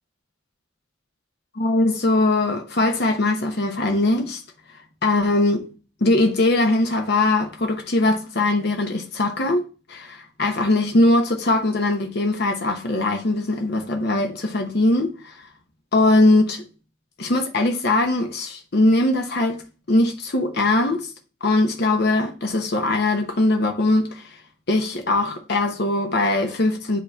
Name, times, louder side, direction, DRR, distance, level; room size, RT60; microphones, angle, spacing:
voice 1, 1.5-4.4 5.0-5.7 6.0-9.6 9.9-15.5 15.9-16.6 17.2-19.6 19.9-21.1 21.4-24.3 24.7-27.0, left 2 dB, 50° left, 0.9 m, -21 dB
8.0 x 2.9 x 4.5 m
head